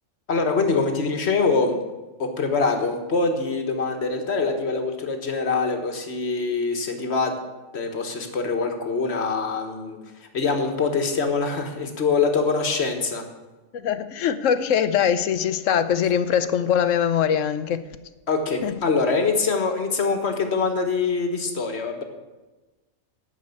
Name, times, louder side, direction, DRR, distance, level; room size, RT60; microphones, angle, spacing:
voice 1, 0.3-1.8 2.2-7.4 7.7-13.2 18.3-22.0, left 4 dB, 50° left, 5 dB, 1.6 m, -24 dB
voice 2, 13.7-17.8 18.6-18.7, left 8 dB, 70° left, 12 dB, 1.0 m, -22 dB
12.0 x 5.2 x 8.3 m, 1.1 s
omnidirectional pair, 1.4 m